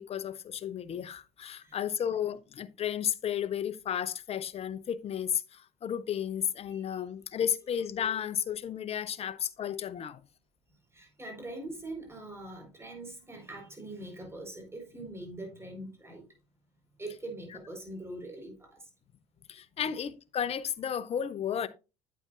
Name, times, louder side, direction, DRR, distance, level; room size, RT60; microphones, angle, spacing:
voice 1, 0.0-10.2 19.5-21.7, left 9 dB, 40° left, 0.9 m, -33 dB
voice 2, 6.7-7.0 10.9-16.3 17.0-18.9 19.8-19.9, right 2 dB, 15° right, 4.7 m, -43 dB
8.8 x 8.7 x 2.6 m
hypercardioid pair, 65°, 16 cm